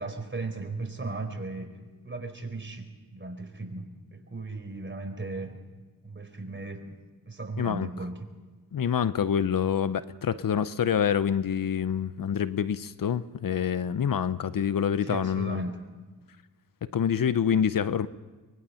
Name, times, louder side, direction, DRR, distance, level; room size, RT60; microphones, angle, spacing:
voice 1, 0.0-1.7 2.0-3.8 4.1-5.6 6.0-7.0 7.3-8.2 15.0-15.8, right 3 dB, 30° right, 5 dB, 4.4 m, -36 dB
voice 2, 7.6-7.9 8.7-15.6 16.9-18.1, left 8 dB, 65° left, 15 dB, 0.8 m, -26 dB
23.5 x 21.0 x 5.7 m, 1.3 s
cardioid pair, 50°, 37 cm